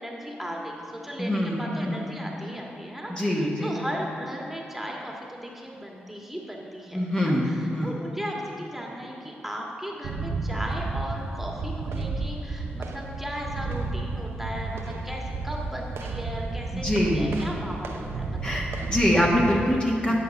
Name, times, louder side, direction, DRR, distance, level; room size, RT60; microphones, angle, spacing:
voice 1, 0.0-16.9 17.1-18.7, equal, 5° right, -1 dB, 1.7 m, -36 dB
voice 2, 1.2-2.0 3.1-3.7 6.9-8.0 16.7-17.4 18.4-20.1, equal, 20° left, -3 dB, 1.6 m, -24 dB
sound 1, 10.0-19.5, right 3 dB, 80° right, 0.7 m, -32 dB
11.0 x 5.3 x 5.4 m, 2.9 s
supercardioid pair, 45°, 4 cm